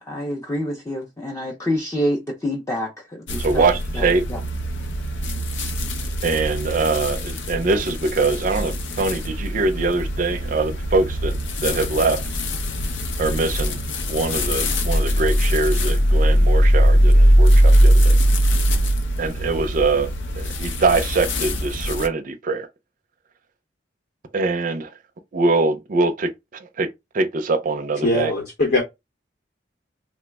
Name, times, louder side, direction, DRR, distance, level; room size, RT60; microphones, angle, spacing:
voice 1, 0.0-3.7 3.9-4.4, equal, 15° left, 0.5 m, -27 dB
sound 1, 3.3-22.1, equal, 85° left, 0.6 m, -20 dB
voice 2, 3.4-4.2 6.2-12.2 13.2-13.8 14.0-18.1 19.2-20.1 20.4-22.7 24.3-24.9 25.3-28.3, right 3 dB, 50° right, 0.4 m, -23 dB
voice 3, 28.0-28.8, left 1 dB, 60° left, 0.8 m, -21 dB
3.1 x 2.0 x 3.3 m
head